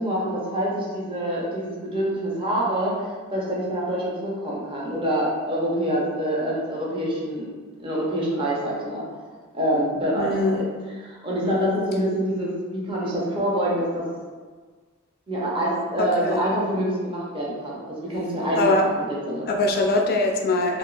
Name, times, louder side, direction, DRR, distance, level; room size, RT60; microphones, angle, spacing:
voice 1, 0.0-7.5 7.8-9.0 9.5-10.7 11.0-14.0 15.3-19.5, right 1 dB, 25° right, -5 dB, 0.7 m, -26 dB
voice 2, 10.2-10.7 11.4-11.8 16.0-16.4 18.5-18.8 19.5-20.8, left 2 dB, 45° left, 2 dB, 0.4 m, -22 dB
3.4 x 2.4 x 2.4 m, 1.4 s
head